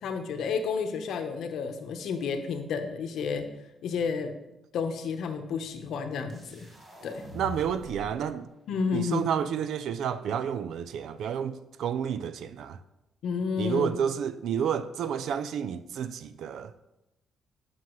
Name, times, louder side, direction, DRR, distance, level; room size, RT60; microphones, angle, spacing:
voice 1, 0.0-3.5 3.8-4.3 4.7-6.7 7.0-7.2 8.7-9.3 13.2-13.9, left 5 dB, 75° left, 0.8 m, -31 dB
sound 1, 6.3-8.3, left 1 dB, 30° right, 1.4 m, -44 dB
voice 2, 7.3-8.5 8.9-12.8 13.6-16.7, right 8 dB, 75° right, 0.4 m, -30 dB
9.4 x 5.7 x 3.1 m
cardioid pair, 90°, 0 cm